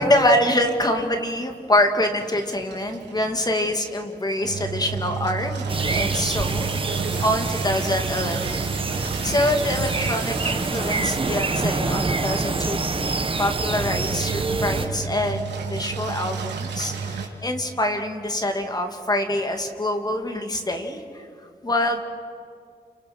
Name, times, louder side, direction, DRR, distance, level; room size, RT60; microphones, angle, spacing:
voice 1, 0.0-8.6 9.2-21.0 21.6-22.0, left 1 dB, 20° left, 5 dB, 2.5 m, -25 dB
Engine, 2.1-17.3, right 5 dB, 85° right, 3.4 m, -32 dB
sound 1, 5.7-14.9, right 3 dB, 30° right, 1.5 m, -26 dB
30.0 x 29.0 x 6.2 m, 2.2 s
wide cardioid pair, 120°, 18 cm